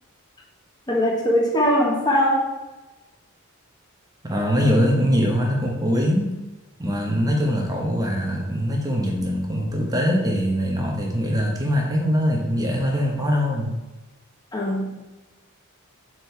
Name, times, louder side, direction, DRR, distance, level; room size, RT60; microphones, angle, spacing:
voice 1, 0.9-2.5 14.5-14.9, equal, 20° left, -2 dB, 1.4 m, -20 dB
voice 2, 4.2-6.4 6.8-13.7, equal, 15° right, -1 dB, 1.1 m, -22 dB
7.5 x 4.5 x 4.6 m, 1.1 s
head